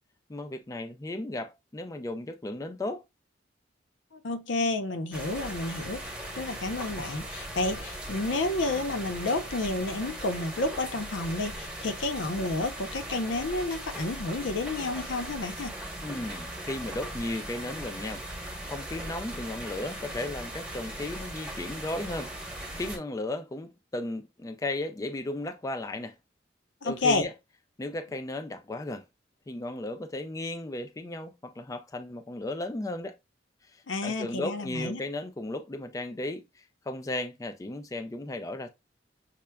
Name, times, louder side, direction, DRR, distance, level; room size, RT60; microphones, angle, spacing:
voice 1, 0.3-3.0 16.0-26.1 26.8-27.3 27.8-29.0 29.5-33.2 33.7-38.7, left 2 dB, 20° left, 0.3 m, -35 dB
voice 2, 4.1-6.0 6.3-15.7 26.8-27.3 33.9-35.0, left 2 dB, 85° left, 0.6 m, -30 dB
sound 1, 5.1-23.0, right 1 dB, 5° right, 0.9 m, -39 dB
5.8 x 2.1 x 2.2 m
head